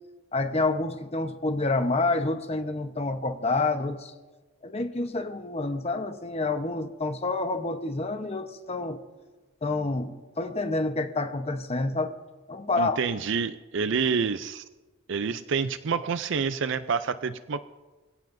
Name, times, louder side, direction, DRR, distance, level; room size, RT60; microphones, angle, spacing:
voice 1, 0.3-4.1 4.6-9.0 9.6-12.1 12.5-13.0, left 3 dB, 30° left, 7 dB, 1.0 m, -28 dB
voice 2, 12.8-14.6 15.1-17.6, right 5 dB, 60° right, 12 dB, 0.5 m, -28 dB
26.0 x 17.0 x 2.7 m, 1.2 s
head